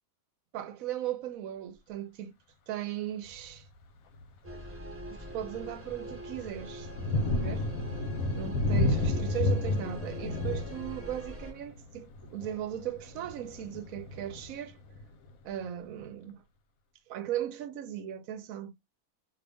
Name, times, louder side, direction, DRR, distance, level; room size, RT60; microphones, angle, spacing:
voice 1, 0.5-2.3 2.7-3.7 5.1-7.7 8.3-14.8 15.4-16.4 17.1-18.7, right 11 dB, 70° right, 1.0 m, -37 dB
Thunder, 3.3-3.6 4.1-4.3 4.7-15.3, left 2 dB, 70° left, 1.2 m, -32 dB
sound 1, 4.4-11.5, right 1 dB, 10° right, 0.9 m, -44 dB
5.1 x 2.7 x 3.4 m
omnidirectional pair, 1.6 m